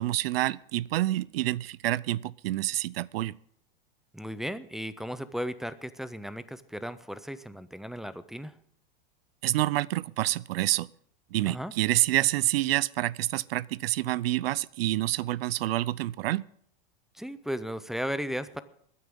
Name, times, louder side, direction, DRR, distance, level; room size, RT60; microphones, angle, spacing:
voice 1, 0.0-3.3 9.4-10.9 11.3-16.4, right 16 dB, 80° right, 0.5 m, -28 dB
voice 2, 4.1-8.6 11.4-11.7 17.1-18.6, equal, ahead, 0.4 m, -35 dB
22.5 x 9.5 x 3.7 m
supercardioid pair, 135°, 30 cm